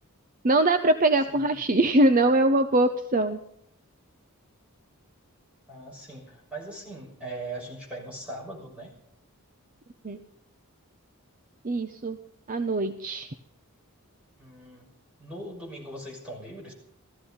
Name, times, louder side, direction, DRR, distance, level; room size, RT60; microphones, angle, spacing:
voice 1, 0.4-3.4 10.0-10.2 11.6-12.2 12.5-13.3, right 2 dB, 40° right, 7 dB, 0.7 m, -22 dB
voice 2, 5.7-8.9 14.4-14.9 15.2-16.7, right 2 dB, 5° right, -3 dB, 6.3 m, -40 dB
17.0 x 14.0 x 5.6 m, 0.70 s
head